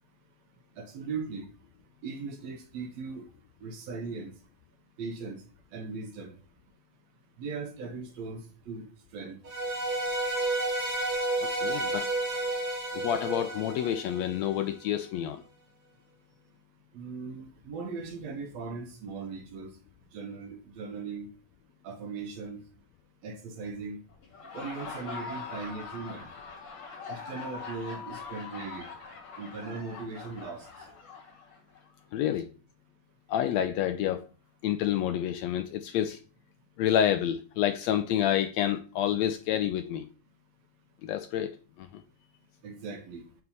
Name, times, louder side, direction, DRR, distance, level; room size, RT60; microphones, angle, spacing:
voice 1, 0.8-1.5 2.0-3.3 3.6-4.3 5.0-5.4 5.7-6.4 7.4-8.9 9.1-9.4 16.9-19.7 20.1-21.3 21.8-22.6 23.2-24.0 24.5-26.3 27.1-28.9 29.4-30.7 42.6-43.2, right 4 dB, 70° right, 2.0 m, -38 dB
sound 1, 9.4-14.7, right 2 dB, 40° right, 1.6 m, -31 dB
voice 2, 11.4-12.1 12.9-15.4 32.1-32.5 33.3-34.2 34.6-36.2 36.8-40.1 41.0-42.0, left 10 dB, 80° left, 1.6 m, -28 dB
Laughter, 24.2-31.9, left 4 dB, 55° left, 3.7 m, -42 dB
7.0 x 3.2 x 5.3 m
omnidirectional pair, 3.4 m